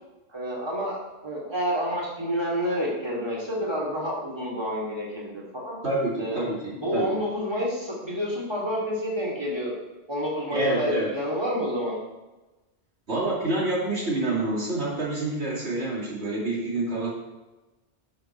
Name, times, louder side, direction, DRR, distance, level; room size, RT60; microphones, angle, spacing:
voice 1, 0.3-5.8 6.2-9.8 10.1-12.0, equal, 25° right, -5 dB, 2.6 m, -29 dB
voice 2, 5.8-7.1 10.5-11.1 13.1-17.1, right 2 dB, 90° right, -4 dB, 2.8 m, -27 dB
11.5 x 6.3 x 4.5 m, 1.1 s
omnidirectional pair, 1.1 m